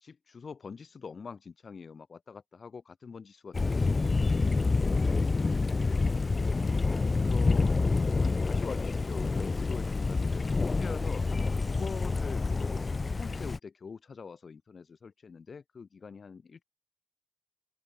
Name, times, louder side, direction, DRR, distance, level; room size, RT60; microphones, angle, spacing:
voice 1, 0.0-5.7 7.2-7.7 8.1-16.6, left 5 dB, 45° left, 1.2 m, -44 dB
Thunder, 3.5-13.6, left 3 dB, 30° left, 0.5 m, -27 dB
open air
cardioid pair, 105°, 0 cm